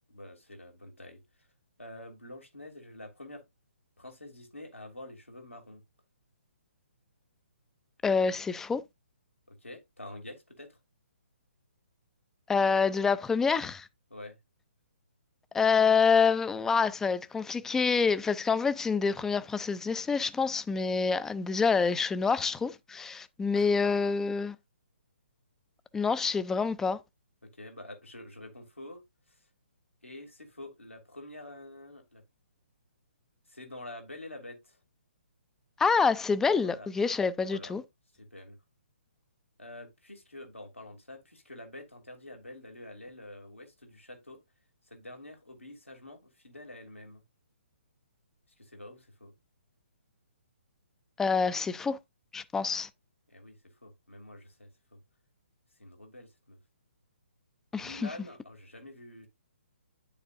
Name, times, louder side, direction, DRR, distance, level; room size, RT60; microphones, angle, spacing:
voice 1, 0.1-1.2 1.8-3.4 4.0-5.8 9.5-10.8 14.1-14.4 23.5-24.0 27.4-29.0 30.0-32.2 33.5-34.8 36.5-36.9 37.4-37.7 38.1-38.6 39.6-44.4 44.9-47.2 48.6-49.3 53.3-55.0 55.8-56.6 57.7-59.3, left 1 dB, 90° left, 2.7 m, -47 dB
voice 2, 8.0-8.8 12.5-13.9 15.5-24.6 25.9-27.0 35.8-37.8 51.2-52.0 52.3-52.9 57.7-58.1, left 5 dB, 5° left, 0.4 m, -27 dB
9.6 x 7.0 x 2.5 m
figure-of-eight pair, 135°, 7 cm